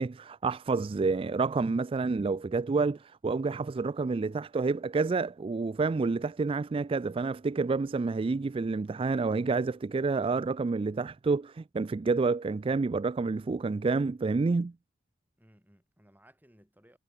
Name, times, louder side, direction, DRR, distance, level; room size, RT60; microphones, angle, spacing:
voice 1, 0.0-14.7, right 4 dB, 30° right, 0.3 m, -29 dB
voice 2, 15.4-17.0, equal, 10° right, 5.7 m, -61 dB
head